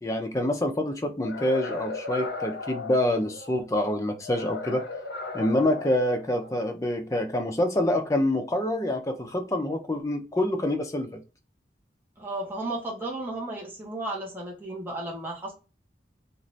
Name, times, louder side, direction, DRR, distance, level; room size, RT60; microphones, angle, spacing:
voice 1, 0.0-4.8 5.3-11.2, left 1 dB, 20° left, 0.4 m, -26 dB
sound 1, 1.2-3.6 4.2-6.6, left 4 dB, 80° left, 0.7 m, -37 dB
voice 2, 12.2-15.5, right 2 dB, 10° right, 0.7 m, -34 dB
2.6 x 2.4 x 3.1 m
head